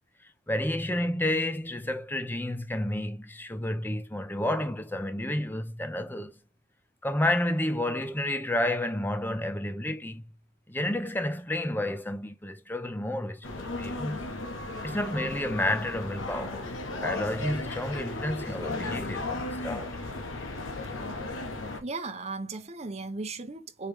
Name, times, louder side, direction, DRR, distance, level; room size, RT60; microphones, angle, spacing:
voice 1, 0.5-6.3 7.0-10.2 10.7-14.2 14.8-16.7 17.0-20.0, left 1 dB, 10° left, 0.6 m, -30 dB
sound 1, 13.4-21.8, left 2 dB, 85° left, 1.2 m, -35 dB
voice 2, 21.8-23.9, right 3 dB, 35° right, 0.9 m, -36 dB
4.7 x 3.3 x 3.2 m
head